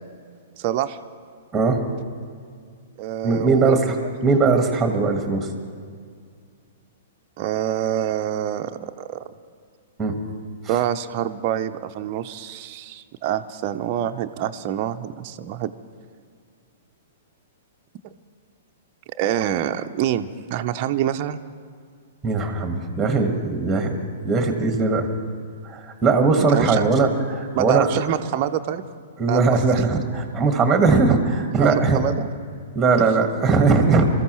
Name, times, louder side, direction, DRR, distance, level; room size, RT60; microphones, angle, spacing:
voice 1, 0.6-1.0 3.0-3.8 7.4-9.2 10.7-15.7 19.2-21.4 26.4-26.8 27.5-28.8 29.3-29.8 31.6-32.3 33.0-33.1, right 11 dB, 40° right, 7 dB, 0.6 m, -26 dB
voice 2, 3.2-4.0 4.2-5.5 10.0-10.2 22.2-24.0 24.2-25.1 25.6-28.0 29.2-32.0 32.8-34.1, right 4 dB, 10° right, 5 dB, 1.6 m, -19 dB
25.5 x 14.0 x 3.1 m, 2.1 s
figure-of-eight pair, 110°, 0 cm